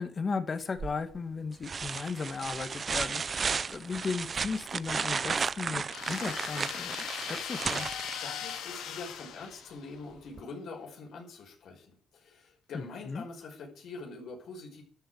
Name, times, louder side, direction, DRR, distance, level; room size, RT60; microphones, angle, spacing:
voice 1, 0.0-3.2 3.7-7.9 12.7-13.3, left 4 dB, 40° left, 9 dB, 2.0 m, -36 dB
sound 1, 0.8-1.2 1.6-8.6 10.4-10.5, right 5 dB, 40° right, 0.6 m, -34 dB
sound 2, 5.9-10.0, left 8 dB, 90° left, 2.4 m, -39 dB
voice 2, 7.9-14.8, left 3 dB, 70° left, 1 dB, 5.6 m, -44 dB
12.5 x 7.8 x 8.0 m, 0.44 s
cardioid pair, 90°, 0 cm